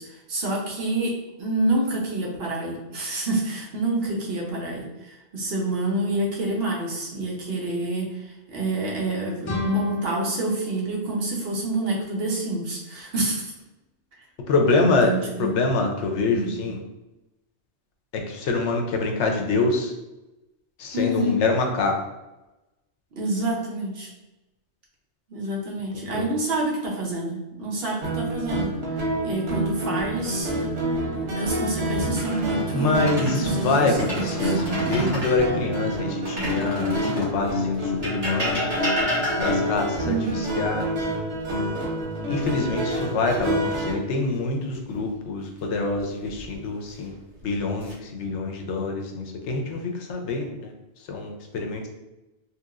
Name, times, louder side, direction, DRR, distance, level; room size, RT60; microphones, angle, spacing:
voice 1, 0.0-13.5 14.8-15.5 16.3-16.5 20.9-21.4 23.1-24.1 25.3-34.5 34.9-35.0 40.0-40.5, right 2 dB, 60° right, -2 dB, 0.9 m, -28 dB
sound 1, 9.4-12.2, left 5 dB, 40° left, 0.4 m, -34 dB
voice 2, 14.5-15.1 15.4-16.8 18.3-19.9 20.8-22.0 25.9-26.3 32.7-38.9 39.4-41.1 42.3-47.1 47.4-50.7 51.1-51.9, left 3 dB, 80° left, 2 dB, 0.9 m, -25 dB
sound 2, 28.0-43.9, equal, 90° right, 1.2 m, -28 dB
sound 3, 32.0-33.4 33.8-35.4 36.2-37.4 38.0-39.8 41.7-42.4 42.8-43.1 46.0-46.6 47.3-47.9, equal, 40° right, 1.4 m, -30 dB
2.9 x 2.8 x 2.4 m, 1.0 s
omnidirectional pair, 1.2 m